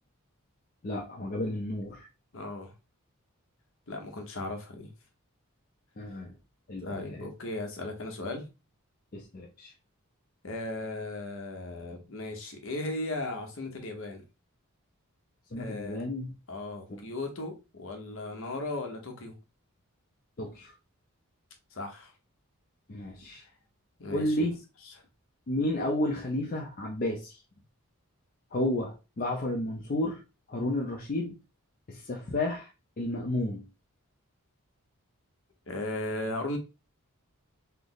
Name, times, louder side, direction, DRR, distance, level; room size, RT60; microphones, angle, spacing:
voice 1, 0.8-2.1 6.0-6.3 6.7-7.3 9.1-9.7 15.5-16.3 16.9-17.0 20.4-20.7 22.9-23.5 24.1-24.6 25.5-27.4 28.5-30.2 30.5-31.4 31.9-32.7 33.0-33.7, left 1 dB, 40° left, 0.5 m, -32 dB
voice 2, 2.3-2.7 3.9-4.9 6.8-8.4 10.4-14.2 15.6-16.0 16.5-19.3 21.7-22.1 24.0-24.5 35.7-36.6, left 2 dB, 60° left, 0.9 m, -36 dB
3.3 x 2.0 x 3.8 m
head